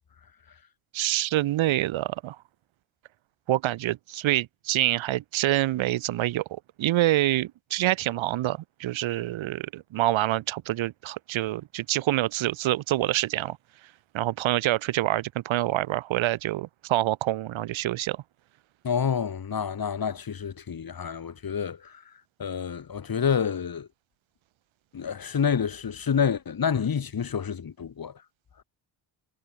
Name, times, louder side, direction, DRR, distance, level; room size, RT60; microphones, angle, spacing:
voice 1, 0.9-2.4 3.5-13.6 14.1-18.2, right 15 dB, 90° right, 1.0 m, -26 dB
voice 2, 18.8-22.0 22.4-23.9 24.9-28.1, left 7 dB, 50° left, 5.4 m, -28 dB
cardioid pair, 110°, 46 cm